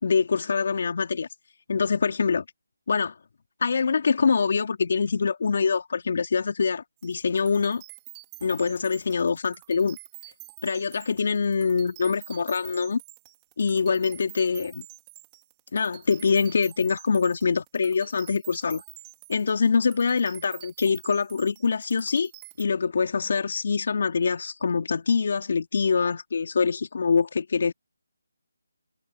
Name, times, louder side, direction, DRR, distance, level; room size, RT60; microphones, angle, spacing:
voice 1, 0.0-1.3 1.7-2.4 2.9-3.1 3.6-7.8 8.4-10.0 10.6-13.0 13.6-14.8 15.7-18.8 19.3-22.3 22.6-27.7, left 5 dB, 55° left, 2.9 m, -24 dB
sound 1, 7.0-22.6, right 30 dB, 15° right, 4.8 m, -48 dB
figure-of-eight pair, 160°, 0 cm